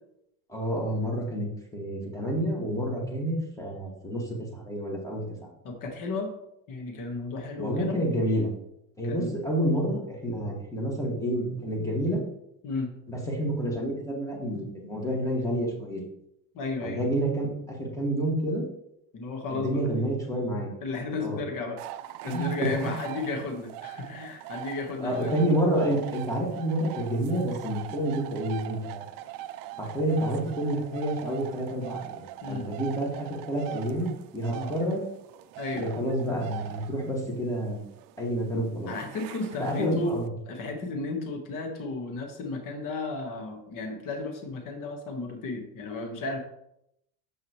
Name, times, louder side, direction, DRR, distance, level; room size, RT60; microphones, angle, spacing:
voice 1, 0.5-5.2 7.6-8.5 9.0-12.2 13.1-16.0 16.8-18.6 19.5-20.7 21.2-21.4 22.3-22.9 25.0-29.1 29.8-35.0 35.7-37.8 38.2-38.9 39.6-40.3, right 1 dB, 5° left, -2 dB, 2.1 m, -29 dB
voice 2, 5.6-6.3 6.7-8.4 9.0-9.3 12.6-12.9 16.5-17.1 19.1-19.9 20.8-21.8 22.2-25.6 32.4-32.7 34.5-34.7 35.6-35.9 38.9-40.2 40.5-46.4, left 3 dB, 45° left, 4 dB, 1.5 m, -34 dB
sound 1, 21.8-40.3, right 13 dB, 50° right, 0.5 m, -42 dB
7.2 x 6.0 x 3.2 m, 0.79 s
supercardioid pair, 115°, 44 cm